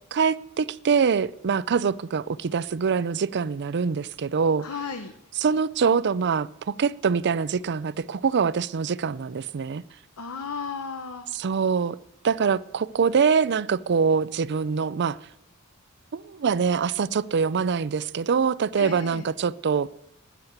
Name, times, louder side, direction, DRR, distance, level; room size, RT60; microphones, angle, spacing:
voice 1, 0.1-4.6 5.4-9.8 11.3-12.0 12.2-15.2 16.1-19.9, right 6 dB, 50° right, 0.5 m, -24 dB
voice 2, 4.6-5.1 10.2-11.2 18.8-19.3, left 5 dB, 80° left, 0.9 m, -34 dB
13.0 x 9.6 x 7.9 m
head